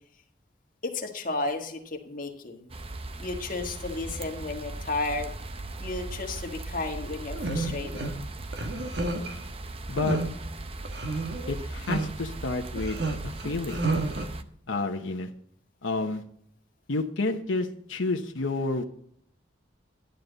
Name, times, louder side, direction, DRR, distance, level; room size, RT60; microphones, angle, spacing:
voice 1, 0.8-2.7 3.2-5.3 5.8-8.1, left 3 dB, 45° left, 2 dB, 1.7 m, -33 dB
sound 1, 2.7-14.4, right 2 dB, 30° right, 0.7 m, -38 dB
sound 2, 7.3-8.1 8.5-9.4 10.0-10.3 10.8-11.5 11.9-12.1 12.8-14.3, right 3 dB, 60° right, 1.4 m, -30 dB
voice 2, 9.9-10.2 11.5-13.8 14.7-15.3 15.8-16.2 16.9-18.8, left 3 dB, 90° left, 4 dB, 1.0 m, -30 dB
12.0 x 9.3 x 4.0 m, 0.65 s
head